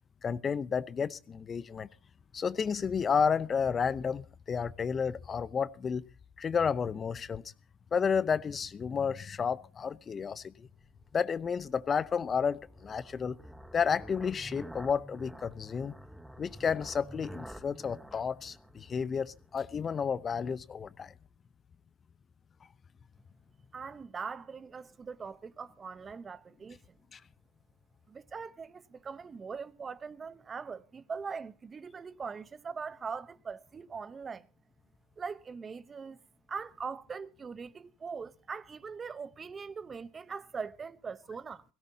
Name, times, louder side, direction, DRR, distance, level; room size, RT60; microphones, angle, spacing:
voice 1, 0.2-1.9 2.3-6.1 6.4-7.4 7.9-10.7 11.1-13.4 13.7-15.9 16.4-21.1 27.1-27.2, left 6 dB, 30° left, 0.7 m, -31 dB
sound 1, 10.0-19.6, right 1 dB, 5° right, 1.1 m, -49 dB
voice 2, 23.7-26.8 28.1-34.5 35.2-36.2 36.5-41.6, right 5 dB, 25° right, 0.9 m, -41 dB
22.0 x 17.0 x 2.8 m
supercardioid pair, 95°, 0 cm